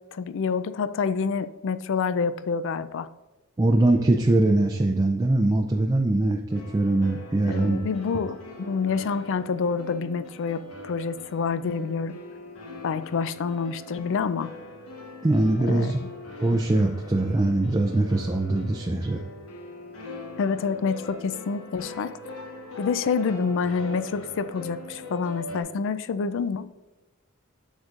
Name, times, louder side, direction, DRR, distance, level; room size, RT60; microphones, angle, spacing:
voice 1, 0.1-3.1 7.4-12.2 12.8-14.5 15.6-15.9 20.4-22.1 22.8-26.7, left 5 dB, 60° left, 14 dB, 0.4 m, -27 dB
voice 2, 3.6-7.8 15.2-16.0 16.4-19.2, right 2 dB, 15° right, 3 dB, 0.4 m, -22 dB
sound 1, 6.5-25.6, left 2 dB, 80° left, 1.4 m, -42 dB
8.0 x 6.4 x 2.5 m, 1.1 s
head